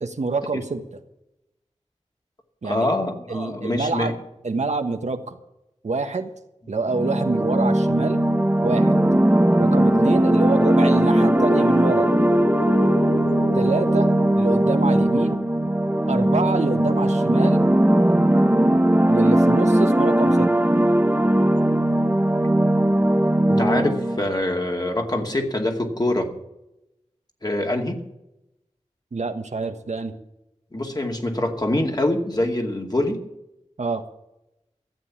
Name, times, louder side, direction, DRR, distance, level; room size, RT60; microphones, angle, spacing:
voice 1, 0.0-0.8 2.6-2.9 3.3-4.2 4.4-5.4 5.8-6.3 6.7-8.2 8.6-9.0 9.6-12.1 13.5-15.4 16.1-17.6 19.1-20.5 29.1-30.1 33.8-34.0, right 3 dB, 70° right, 7 dB, 1.3 m, -26 dB
voice 2, 2.6-4.1 23.5-26.3 27.4-28.0 30.7-33.2, left 1 dB, 35° left, 3 dB, 2.3 m, -24 dB
sound 1, 6.9-24.2, right 1 dB, 15° right, 1.0 m, -19 dB
sound 2, 9.1-17.2, left 2 dB, 70° left, 1.2 m, -33 dB
14.0 x 7.8 x 8.8 m, 0.89 s
wide cardioid pair, 55°, 12 cm